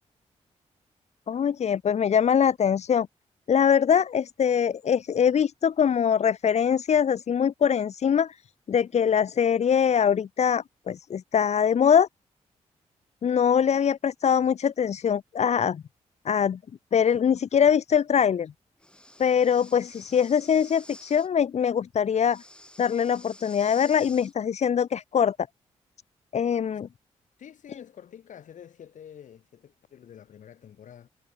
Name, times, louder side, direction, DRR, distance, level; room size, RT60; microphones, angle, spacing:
voice 1, 1.3-3.1 3.5-8.4 8.7-12.1 13.2-15.8 16.2-16.6 16.9-18.5 19.2-22.4 22.8-25.4 26.3-26.9, left 8 dB, 60° left, 0.8 m, -23 dB
Breathing, 18.8-21.3 22.2-24.3, left 1 dB, 5° left, 7.1 m, -50 dB
voice 2, 27.4-31.1, left 9 dB, 75° left, 5.9 m, -47 dB
cardioid pair, 65°, 13 cm